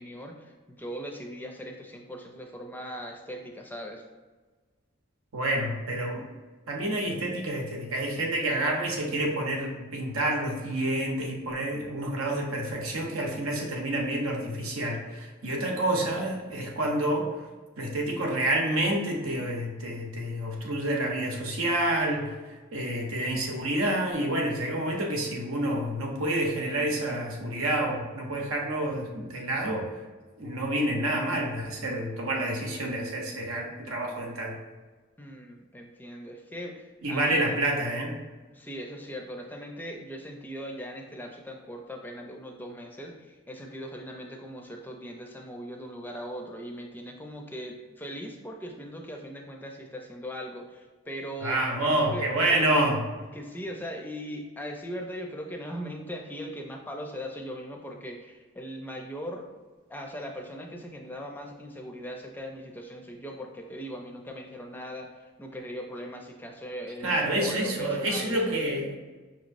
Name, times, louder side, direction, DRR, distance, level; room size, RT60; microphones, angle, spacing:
voice 1, 0.0-4.0 35.2-37.6 38.5-52.3 52.5-52.7 53.3-59.5 59.9-68.6, equal, 10° left, 2 dB, 0.4 m, -39 dB
voice 2, 5.3-6.3 6.7-17.3 17.8-22.4 22.7-29.9 30.4-34.6 37.0-38.2 51.4-53.1 67.0-69.0, right 1 dB, 90° right, 1 dB, 0.9 m, -28 dB
5.6 x 3.0 x 2.5 m, 1.3 s
head